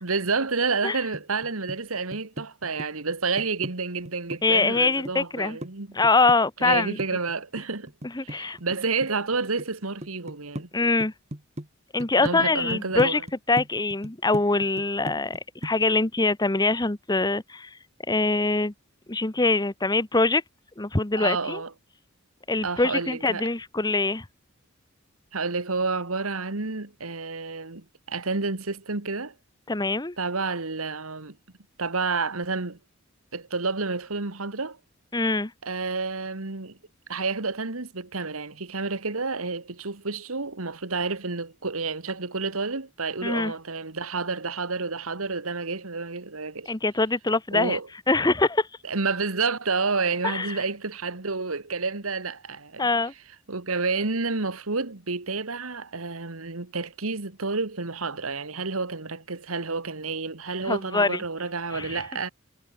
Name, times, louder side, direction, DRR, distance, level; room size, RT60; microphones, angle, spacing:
voice 1, 0.0-6.0 6.6-7.9 8.2-10.7 12.2-13.2 21.2-21.7 22.6-23.5 25.3-29.3 30.2-31.4 31.8-32.8 33.3-34.8 35.6-36.8 37.1-46.7 47.5-47.9 48.8-52.9 53.5-62.3, right 4 dB, 90° right, 1.9 m, -29 dB
sound 1, 1.1-1.8 2.1-3.7 4.0-5.7 6.0-8.8 9.0-9.7 10.0-10.7 11.0-11.7 12.0-12.3 12.7-15.4 15.6-15.8, right 1 dB, 30° right, 2.5 m, -37 dB
voice 2, 4.4-5.6 5.9-7.0 8.1-8.6 10.7-11.1 11.9-13.2 13.5-17.7 18.1-18.7 19.1-20.4 20.8-21.6 22.5-24.2 29.7-30.1 35.1-35.5 43.2-43.5 46.7-47.8 48.1-48.7 50.2-50.5 52.8-53.1 60.7-61.2 61.7-62.0, left 3 dB, 20° left, 1.1 m, -23 dB
head